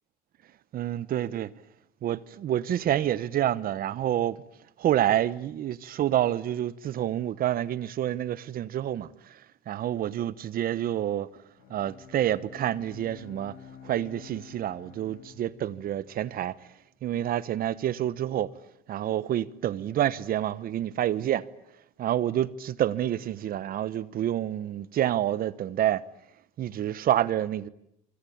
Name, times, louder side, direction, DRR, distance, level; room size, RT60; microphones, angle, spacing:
voice 1, 0.7-1.5 2.0-4.4 4.8-9.4 9.7-11.3 11.7-13.6 13.8-16.5 17.0-18.5 18.9-21.4 22.0-26.0 26.6-27.7, right 11 dB, 60° right, 1.1 m, -28 dB
Bowed string instrument, 11.6-16.6, left 8 dB, 90° left, 7.7 m, -49 dB
26.5 x 24.5 x 8.7 m
cardioid pair, 110°, 17 cm